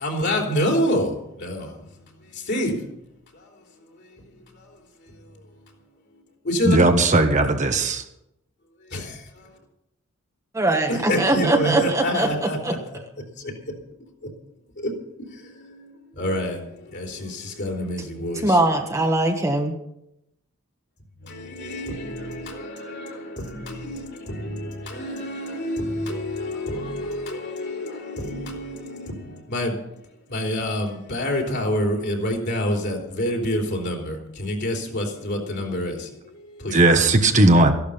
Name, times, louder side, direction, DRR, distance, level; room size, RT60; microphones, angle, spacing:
voice 1, 0.0-1.1 1.4-1.6 2.5-2.7 6.5-6.8 8.9-9.0 10.9-12.6 16.2-16.6 16.9-17.3 17.6-18.4 21.6-23.1 23.6-24.0 24.3-24.7 24.9-28.6 29.5-29.7 30.3-35.9 36.6-36.8, left 1 dB, 50° left, 3.5 m, -26 dB
voice 2, 6.6-8.0 36.7-37.7, right 2 dB, 35° right, 1.2 m, -17 dB
voice 3, 10.5-12.3 12.6-12.7 18.4-19.7, right 2 dB, 15° right, 1.2 m, -21 dB
14.5 x 12.0 x 5.6 m
head